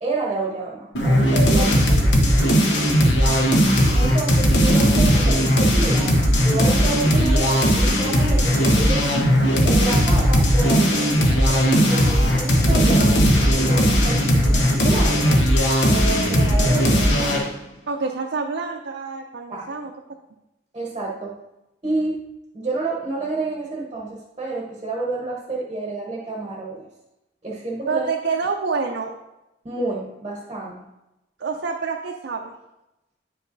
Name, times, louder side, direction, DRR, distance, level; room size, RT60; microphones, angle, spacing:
voice 1, 0.0-1.7 3.9-9.1 9.6-15.4 15.9-17.4 19.5-19.7 20.7-21.4 21.8-22.2 22.5-26.9 27.4-28.1 29.6-30.9, right 3 dB, 30° right, -3 dB, 0.9 m, -29 dB
sound 1, 1.0-17.5, equal, 75° left, 1.0 m, -17 dB
voice 2, 1.5-2.0 3.2-3.6 17.9-19.9 27.9-29.1 31.4-32.5, right 4 dB, 80° right, 1 dB, 0.6 m, -27 dB
9.2 x 5.4 x 2.6 m, 0.95 s
head